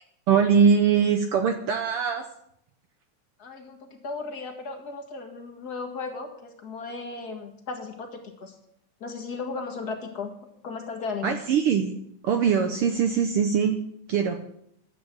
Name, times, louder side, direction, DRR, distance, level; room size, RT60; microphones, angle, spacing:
voice 1, 0.3-2.3 11.2-11.9 12.2-13.8 14.1-14.4, right 6 dB, 75° right, 6 dB, 1.3 m, -22 dB
voice 2, 3.4-8.5 9.0-10.3 10.6-11.4, left 4 dB, 40° left, 4 dB, 1.8 m, -35 dB
12.0 x 8.6 x 7.4 m, 0.74 s
omnidirectional pair, 3.5 m